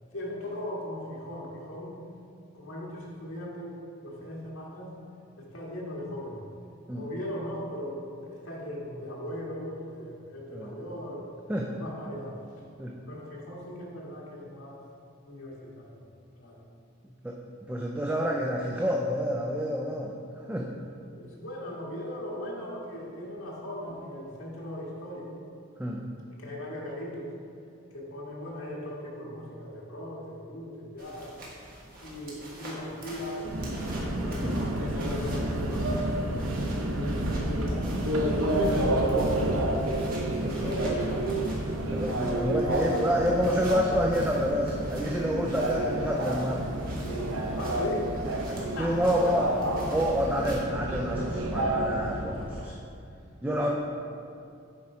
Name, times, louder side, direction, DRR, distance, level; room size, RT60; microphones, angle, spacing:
voice 1, 0.1-2.0 2.5-4.9 5.4-6.5 6.9-11.3 11.7-12.7 13.1-14.9 15.2-16.0 16.4-16.6 21.1-25.4 26.4-27.3 27.9-31.4 32.0-33.5 34.2-37.9 38.3-40.0 40.4-41.4 47.5-48.1 48.4-49.4 53.4-53.7, left 1 dB, 80° left, -4 dB, 1.7 m, -39 dB
voice 2, 17.2-20.1 20.5-20.7 25.8-26.1 34.4-34.6 40.4-40.9 41.8-46.7 46.9-47.1 48.8-49.5 49.9-52.7 53.4-53.7, equal, 5° right, -1 dB, 0.4 m, -28 dB
sound 1, 31.0-50.6, right 1 dB, 45° right, 1.4 m, -47 dB
Subway metro underground, 33.4-52.7, right 1 dB, 85° right, 0.8 m, -29 dB
7.8 x 4.4 x 4.9 m, 2.5 s
head